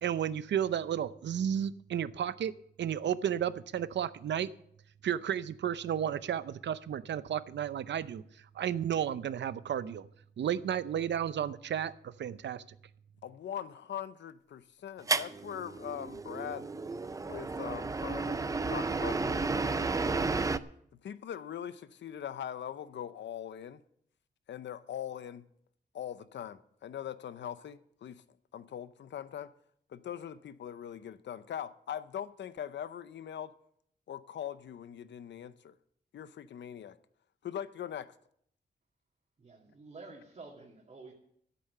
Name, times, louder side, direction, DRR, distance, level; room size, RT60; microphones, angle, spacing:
voice 1, 0.0-4.5 5.0-8.2 8.5-10.1 10.4-12.6, right 9 dB, 80° right, 0.6 m, -33 dB
voice 2, 13.2-16.7 17.3-20.0 21.0-23.8 24.5-25.4 25.9-28.2 28.5-29.5 29.9-33.5 34.1-35.7 36.1-37.0 37.4-38.1, left 9 dB, 90° left, 0.6 m, -41 dB
sound 1, 15.1-20.6, right 3 dB, 20° right, 0.4 m, -32 dB
voice 3, 39.4-41.1, right 3 dB, 35° right, 2.4 m, -50 dB
13.0 x 8.5 x 6.7 m
wide cardioid pair, 160°, 18 cm